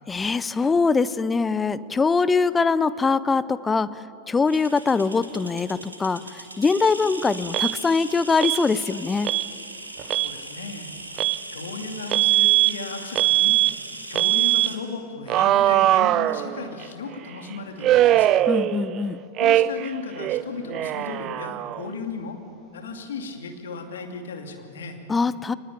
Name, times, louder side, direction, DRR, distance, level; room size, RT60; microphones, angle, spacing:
voice 1, 0.1-4.0 4.3-9.3 18.5-19.2 25.1-25.5, left 4 dB, 15° left, 17 dB, 0.6 m, -22 dB
sound 1, 4.5-14.8, right 1 dB, 85° right, 2.4 m, -39 dB
Alarm, 7.5-7.7 8.4-8.6 9.2-9.5 10.0-10.3 11.2-11.4 12.1-12.7 13.2-13.7 14.2-14.7 15.3-16.8 17.8-19.0 19.4-19.9 20.2-21.9, right 14 dB, 35° right, 0.5 m, -21 dB
voice 2, 10.1-10.9 11.5-13.6 14.1-18.4 19.4-22.4 22.7-25.0, left 4 dB, 65° left, 4 dB, 2.5 m, -35 dB
24.0 x 20.0 x 8.9 m, 2.7 s
figure-of-eight pair, 90°, 0 cm